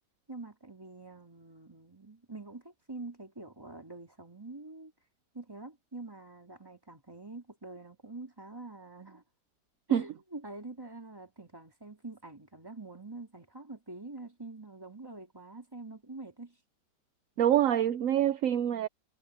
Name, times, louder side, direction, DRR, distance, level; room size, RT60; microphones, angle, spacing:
voice 1, 0.3-4.9 5.3-9.2 9.9-16.6 18.2-18.4, right 3 dB, 15° right, 3.1 m, -46 dB
voice 2, 17.4-18.9, right 10 dB, 65° right, 0.9 m, -25 dB
omnidirectional pair, 1.8 m